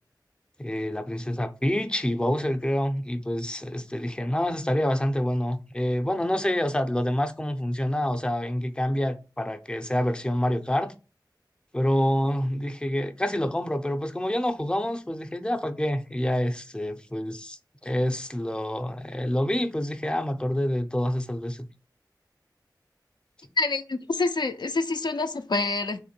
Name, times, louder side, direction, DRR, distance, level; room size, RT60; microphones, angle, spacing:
voice 1, 0.6-10.9 11.7-21.7, left 1 dB, 10° left, 0.5 m, -27 dB
voice 2, 23.6-26.0, left 3 dB, 80° left, 0.4 m, -27 dB
3.0 x 2.9 x 4.3 m
wide cardioid pair, 45°, 8 cm